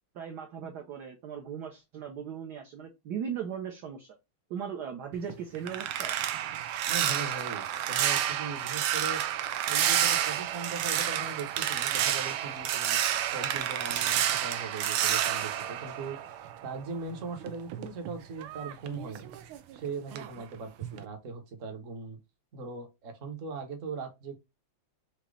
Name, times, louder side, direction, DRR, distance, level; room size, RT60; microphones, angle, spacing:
voice 1, 0.1-4.2 4.5-6.2, right 7 dB, 65° right, 1.2 m, -38 dB
sound 1, 5.1-16.8 17.1-19.8 20.1-20.4 20.8-21.1, right 11 dB, 85° right, 1.5 m, -30 dB
voice 2, 6.9-9.2 9.7-13.0 13.3-16.2 16.6-19.3 19.7-22.2 22.5-24.4, right 4 dB, 45° right, 1.3 m, -39 dB
5.1 x 2.9 x 3.2 m
omnidirectional pair, 2.3 m